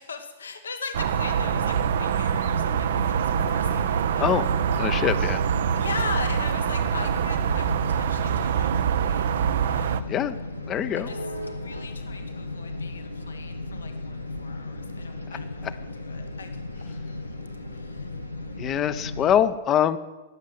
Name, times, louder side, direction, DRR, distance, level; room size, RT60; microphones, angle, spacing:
voice 1, 0.0-4.3 5.7-10.1 11.0-11.2 11.5-15.6 16.0-17.4 17.7-18.1, left 5 dB, 70° left, 7 dB, 1.4 m, -39 dB
sound 1, 0.9-10.0, right 8 dB, 60° right, 0.6 m, -25 dB
sound 2, 1.1-19.4, left 2 dB, 90° left, 1.2 m, -35 dB
voice 2, 4.8-5.4 10.1-10.4 10.7-11.1 18.6-20.0, left 10 dB, 30° left, 14 dB, 0.7 m, -23 dB
19.0 x 7.5 x 7.7 m, 1.2 s
figure-of-eight pair, 100°, 0 cm